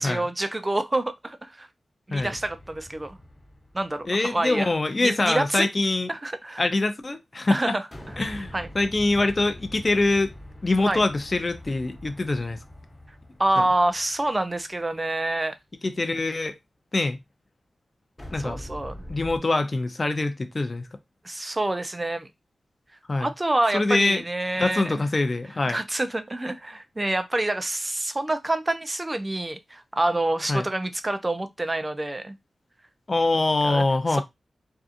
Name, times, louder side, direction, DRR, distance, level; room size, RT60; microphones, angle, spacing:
voice 1, 0.0-1.7 2.1-3.2 3.7-4.7 5.0-5.7 6.1-6.6 7.5-7.9 8.5-8.7 10.9-11.0 13.4-15.5 18.4-18.9 21.2-22.3 23.2-25.0 25.7-32.4 33.6-34.2, right 2 dB, 25° right, 0.5 m, -27 dB
sound 1, 2.2-4.7 7.9-15.1 18.2-19.4, left 1 dB, 25° left, 1.1 m, -43 dB
voice 2, 4.1-6.1 6.6-7.8 8.2-10.3 10.6-12.6 13.6-13.7 15.8-16.5 16.9-17.2 18.3-18.6 19.1-20.9 23.1-23.3 23.7-24.2 24.6-25.8 30.5-30.6 33.1-34.2, left 2 dB, 45° left, 0.5 m, -24 dB
2.7 x 2.4 x 2.4 m
cardioid pair, 40°, 0 cm